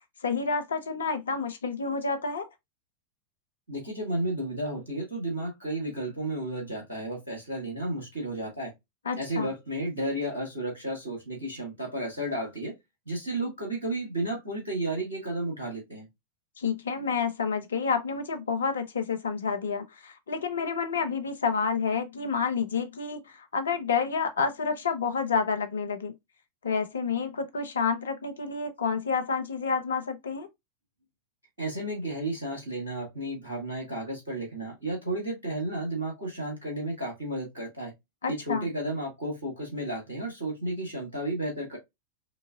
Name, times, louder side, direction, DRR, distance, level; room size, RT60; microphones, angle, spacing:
voice 1, 0.2-2.5 9.1-9.5 16.6-26.1 26.6-30.5 38.2-38.7, left 5 dB, 70° left, 0.6 m, -29 dB
voice 2, 3.7-8.7 9.1-12.7 13.1-16.1 31.6-37.9 38.3-41.8, right 1 dB, 75° right, 1.6 m, -33 dB
4.0 x 2.8 x 2.2 m
figure-of-eight pair, 90°, 0 cm